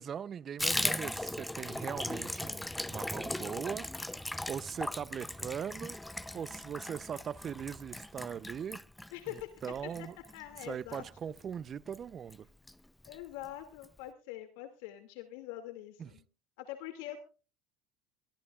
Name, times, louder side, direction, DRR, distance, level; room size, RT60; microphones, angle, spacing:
voice 1, 0.0-3.9 4.5-6.0 6.3-8.8 9.3-10.1 10.7-12.5 16.0-16.1, right 8 dB, 35° right, 0.6 m, -40 dB
Water tap faucet / Bathtub (filling or washing), 0.6-11.5 11.9-12.0 12.3-12.4 12.7-13.2 13.4-13.5 13.8-13.9, left 1 dB, 5° left, 0.7 m, -38 dB
voice 2, 9.1-9.5 10.0-10.1 10.3-11.0 13.0-16.2 16.6-17.2, left 13 dB, 75° left, 2.4 m, -44 dB
22.0 x 15.0 x 2.4 m
supercardioid pair, 115°, 0 cm